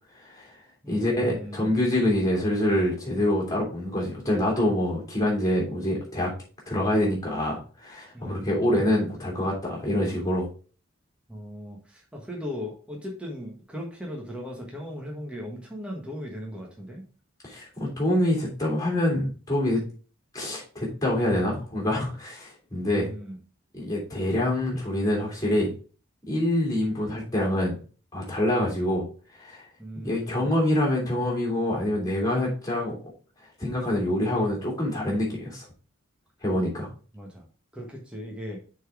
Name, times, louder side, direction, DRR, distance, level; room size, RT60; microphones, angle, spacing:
voice 1, 0.1-0.6 0.9-6.3 6.7-10.5 17.4-19.8 20.3-23.1 23.7-25.7 26.3-27.8 28.1-29.1 29.4-29.7 30.0-33.0 33.6-35.7 36.4-36.9, left 1 dB, 15° left, -4 dB, 2.8 m, -26 dB
voice 2, 0.8-1.7 8.1-8.5 11.3-17.1 22.9-23.4 29.8-30.5 37.1-37.4 37.7-38.6, equal, 5° right, -1 dB, 1.2 m, -37 dB
6.5 x 4.0 x 4.7 m, 0.38 s
head